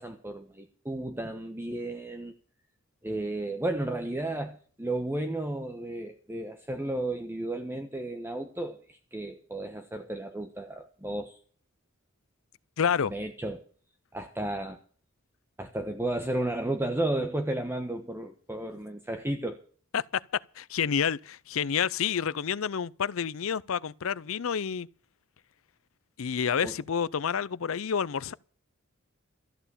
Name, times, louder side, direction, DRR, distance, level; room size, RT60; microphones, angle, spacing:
voice 1, 0.0-2.3 3.0-11.4 13.0-13.6 14.1-14.8 15.6-19.6 26.6-26.8, right 1 dB, 10° right, 1.1 m, -33 dB
voice 2, 12.8-13.1 19.9-20.0 20.6-24.9 26.2-28.3, left 7 dB, 70° left, 0.5 m, -29 dB
14.0 x 9.0 x 7.0 m
head